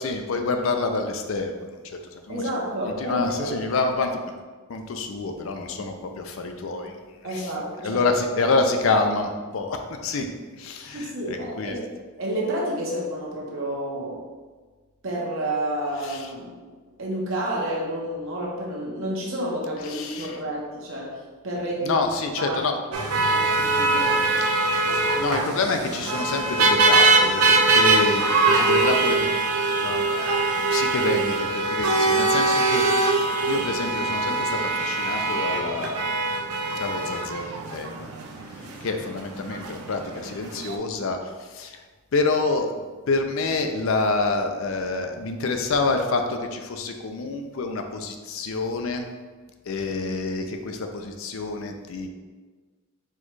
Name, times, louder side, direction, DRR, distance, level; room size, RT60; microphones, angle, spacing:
voice 1, 0.0-2.4 2.8-4.2 4.7-7.0 7.3-7.5 7.8-10.3 10.6-11.7 16.0-16.3 19.8-20.4 21.8-22.8 25.1-29.3 29.6-36.0 36.8-38.1 38.6-41.8 42.1-42.7 43.1-49.0 49.7-52.1, left 3 dB, 65° left, 5 dB, 0.4 m, -27 dB
voice 2, 2.3-3.5 7.2-8.0 10.9-11.8 12.2-14.2 15.0-16.6 17.0-22.0 22.4-22.6 23.3-24.2 38.6-39.0, right 1 dB, 60° right, -3 dB, 1.0 m, -30 dB
sound 1, 22.9-40.7, right 3 dB, 80° right, 0.5 m, -22 dB
4.5 x 2.3 x 4.5 m, 1.4 s
head